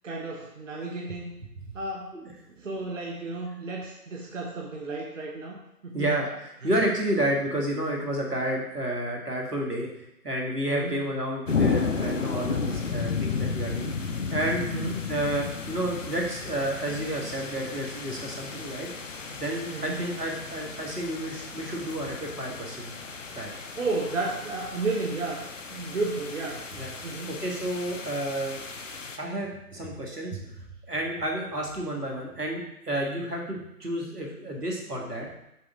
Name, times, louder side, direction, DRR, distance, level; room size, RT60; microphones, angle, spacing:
voice 1, 0.0-1.3 1.7-2.2 2.6-6.1 6.6-6.7 10.7-11.1 14.7-15.0 19.7-20.1 23.8-25.4 25.7-26.6 27.0-27.4, right 3 dB, 55° right, -1 dB, 1.0 m, -32 dB
voice 2, 5.9-9.9 10.2-14.7 15.1-18.9 19.3-22.9 23.3-23.5 26.7-26.9 27.3-28.6 29.2-30.4 30.9-35.3, right 1 dB, 85° right, 0 dB, 1.8 m, -30 dB
sound 1, 11.5-29.2, left 5 dB, 55° left, 0.7 m, -33 dB
6.8 x 5.0 x 3.6 m, 0.83 s
figure-of-eight pair, 145°, 46 cm